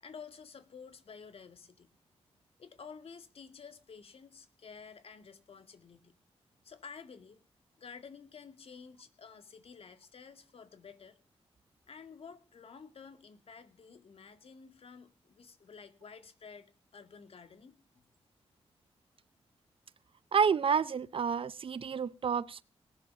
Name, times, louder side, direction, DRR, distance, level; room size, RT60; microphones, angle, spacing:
voice 1, 0.0-1.9 2.6-6.1 6.6-7.4 7.8-11.2 11.9-17.8, left 5 dB, 65° left, 2.1 m, -51 dB
voice 2, 20.3-22.6, right 6 dB, 55° right, 0.7 m, -29 dB
19.0 x 7.4 x 6.8 m
cardioid pair, 85°, 11 cm